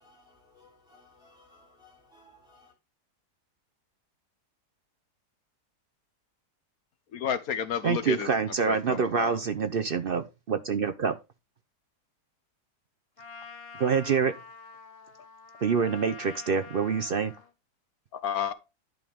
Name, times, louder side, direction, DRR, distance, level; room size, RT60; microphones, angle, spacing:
voice 1, 0.0-2.7, left 2 dB, ahead, 3.4 m, -59 dB
voice 2, 7.1-8.3 8.7-9.3 18.1-18.5, left 8 dB, 65° left, 1.4 m, -31 dB
voice 3, 7.8-11.2 13.8-14.3 15.6-17.3, right 6 dB, 60° right, 0.6 m, -26 dB
Trumpet, 13.2-17.5, left 4 dB, 40° left, 1.2 m, -46 dB
11.0 x 5.4 x 3.5 m
omnidirectional pair, 1.7 m